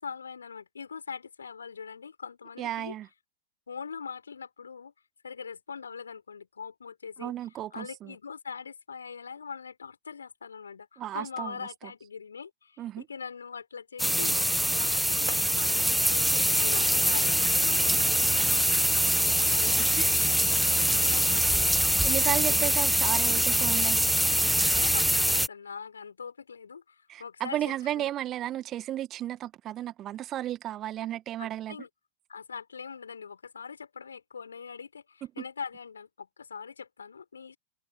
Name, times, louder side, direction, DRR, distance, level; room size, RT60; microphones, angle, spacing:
voice 1, 0.0-2.9 3.7-4.9 5.2-7.4 7.7-14.4 14.7-20.0 20.5-21.9 22.2-22.6 24.7-27.6 28.0-28.1 31.4-31.9 32.3-37.6, left 6 dB, 70° left, 5.1 m, -42 dB
voice 2, 2.6-3.1 7.2-8.1 11.0-11.6 12.8-13.1 19.7-20.2 22.0-24.0 27.1-31.8, right 12 dB, 30° right, 1.8 m, -34 dB
sound 1, 14.0-25.5, equal, ahead, 0.9 m, -24 dB
figure-of-eight pair, 90°, 0 cm